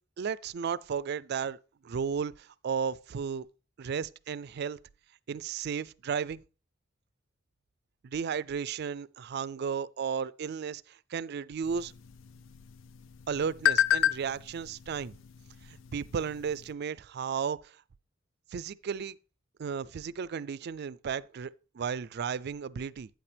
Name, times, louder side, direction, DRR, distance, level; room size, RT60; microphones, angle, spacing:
voice 1, 0.2-1.6 1.8-3.5 3.8-4.8 5.3-6.4 8.0-11.9 13.3-15.1 15.7-17.8 18.5-19.2 19.6-23.1, right 6 dB, 55° right, 0.4 m, -34 dB
sound 1, 11.6-16.7, left 11 dB, 70° left, 0.4 m, -32 dB
8.9 x 8.5 x 3.4 m
head